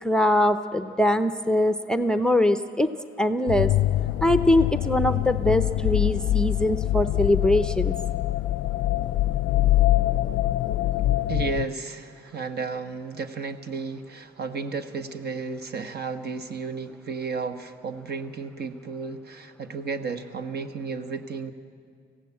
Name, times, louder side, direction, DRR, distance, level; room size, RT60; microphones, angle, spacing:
voice 1, 0.0-2.9 3.2-3.7 4.2-7.9, left 1 dB, 5° left, 9 dB, 0.6 m, -22 dB
sound 1, 3.5-11.7, left 14 dB, 80° left, 0.4 m, -24 dB
voice 2, 11.3-21.5, right 4 dB, 55° right, 7 dB, 1.2 m, -33 dB
19.5 x 15.5 x 8.6 m, 2.2 s
cardioid pair, 90°, 20 cm